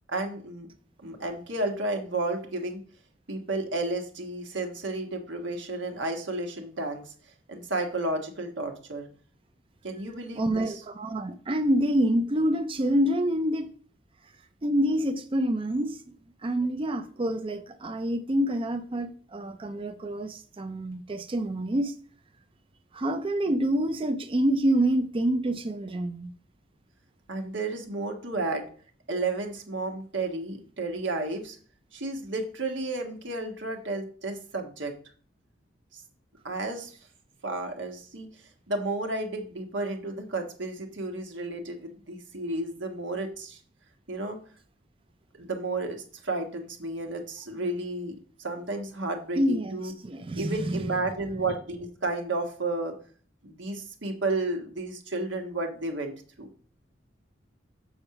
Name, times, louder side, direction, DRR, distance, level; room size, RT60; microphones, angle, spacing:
voice 1, 0.1-0.7 1.0-2.8 3.3-7.1 7.5-9.1 9.8-10.8 27.3-28.7 29.1-31.6 31.9-34.9 35.9-36.0 36.4-36.9 37.4-38.3 38.7-43.6 44.1-44.4 45.4-49.9 50.3-52.9 53.4-56.5, right 2 dB, 90° right, 1.5 m, -32 dB
voice 2, 10.3-13.7 14.6-16.0 16.4-21.9 22.9-26.3 49.4-51.0, right 1 dB, 30° right, 0.5 m, -27 dB
7.2 x 4.5 x 5.8 m
head